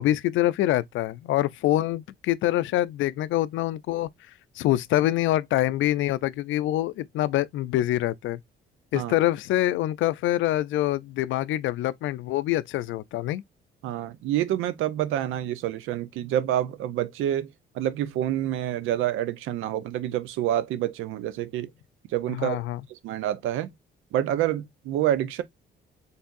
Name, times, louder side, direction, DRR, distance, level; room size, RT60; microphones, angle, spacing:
voice 1, 0.0-4.1 4.6-8.4 8.9-13.4 22.4-22.8, left 14 dB, 80° left, 0.4 m, -25 dB
voice 2, 13.8-21.7 22.1-22.6 22.9-23.7 24.1-25.4, right 12 dB, 90° right, 0.6 m, -27 dB
4.5 x 3.3 x 2.5 m
cardioid pair, 90°, 20 cm